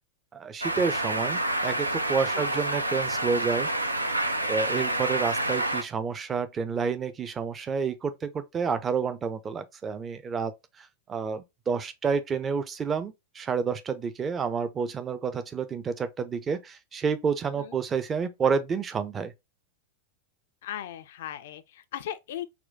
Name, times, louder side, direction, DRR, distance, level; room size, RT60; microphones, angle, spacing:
voice 1, 0.3-3.7 4.5-10.5 11.1-19.3, right 5 dB, 20° right, 0.6 m, -29 dB
sound 1, 0.6-5.8, right 1 dB, 85° right, 0.5 m, -28 dB
voice 2, 20.6-22.4, left 11 dB, 55° left, 0.5 m, -38 dB
4.3 x 2.2 x 3.8 m
figure-of-eight pair, 90°, 0 cm